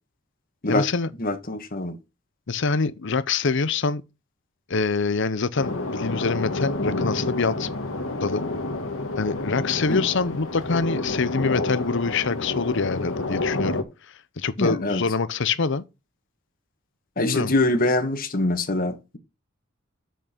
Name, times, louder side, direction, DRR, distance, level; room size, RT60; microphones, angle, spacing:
voice 1, 0.7-1.1 2.5-4.0 4.7-7.7 8.2-8.4 9.2-13.8 14.4-15.8 17.2-17.5, left 4 dB, 65° left, 0.8 m, -25 dB
voice 2, 1.2-2.0 9.9-10.1 14.6-15.0 17.2-19.2, left 2 dB, 45° left, 1.6 m, -24 dB
sound 1, 5.6-13.8, left 2 dB, 90° left, 1.6 m, -29 dB
6.6 x 6.2 x 6.7 m
head